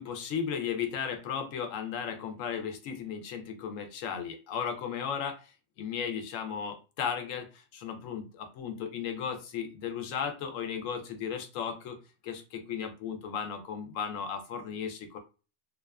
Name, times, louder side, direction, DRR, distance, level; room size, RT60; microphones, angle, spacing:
voice 1, 0.0-12.0 12.2-15.2, left 7 dB, 85° left, 5 dB, 1.0 m, -35 dB
2.5 x 2.4 x 2.2 m, 0.33 s
omnidirectional pair, 1.3 m